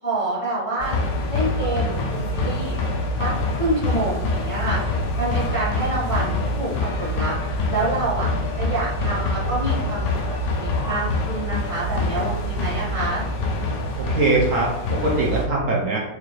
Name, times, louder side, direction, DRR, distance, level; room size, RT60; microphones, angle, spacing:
voice 1, 0.0-1.0 1.3-2.8 3.2-4.8 5.1-6.7 7.0-7.3 7.7-8.3 8.6-10.0 10.5-13.2, right 2 dB, 30° left, -9 dB, 0.6 m, -27 dB
sound 1, 0.8-15.5, left 2 dB, 85° left, 1.3 m, -25 dB
voice 2, 14.0-16.0, right 2 dB, 65° right, -3 dB, 0.8 m, -22 dB
4.7 x 2.4 x 3.0 m, 0.94 s
omnidirectional pair, 1.8 m